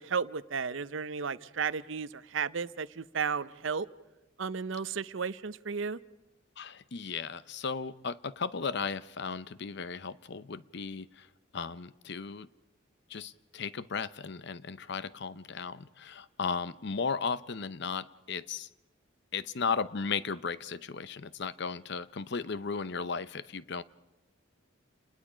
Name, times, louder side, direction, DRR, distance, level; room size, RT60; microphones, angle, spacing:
voice 1, 0.0-3.9 4.4-6.0, right 6 dB, 65° right, 0.6 m, -33 dB
voice 2, 6.6-11.3 11.5-12.5 13.1-18.7 19.3-23.8, left 5 dB, 55° left, 0.7 m, -35 dB
29.5 x 20.5 x 5.0 m
head